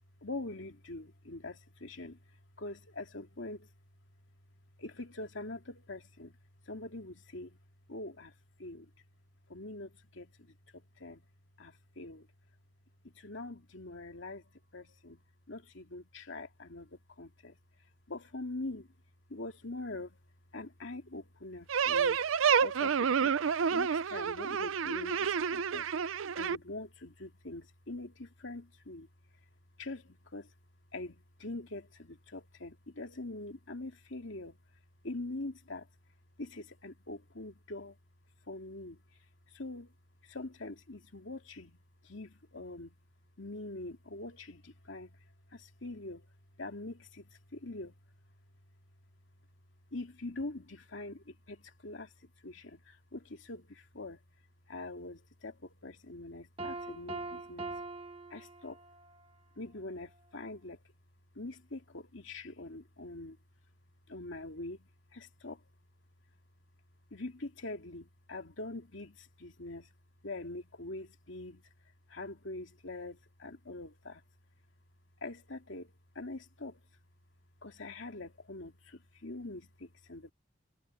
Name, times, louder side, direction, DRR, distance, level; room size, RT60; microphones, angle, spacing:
voice 1, 0.2-2.2 2.6-3.7 4.8-6.4 6.7-7.6 7.9-8.9 9.5-11.3 11.6-12.3 13.0-15.2 15.5-17.6 18.1-18.9 19.3-20.2 20.5-22.2 22.6-23.4 23.7-29.1 29.8-30.5 30.9-34.6 35.0-35.9 36.4-38.0 38.5-39.0 39.5-39.9 40.2-43.0 43.4-45.2 45.5-46.3 46.6-47.9 49.9-52.1 52.4-54.2 54.7-57.7 58.3-58.8 59.6-60.8 61.3-63.4 64.1-65.6 67.1-69.9 70.2-71.7 72.1-74.2 75.2-76.8 77.6-80.3, left 2 dB, 70° left, 2.5 m, -44 dB
sound 1, 21.7-26.6, right 6 dB, 85° right, 0.5 m, -29 dB
Piano, 56.6-59.1, right 2 dB, 30° right, 1.1 m, -42 dB
head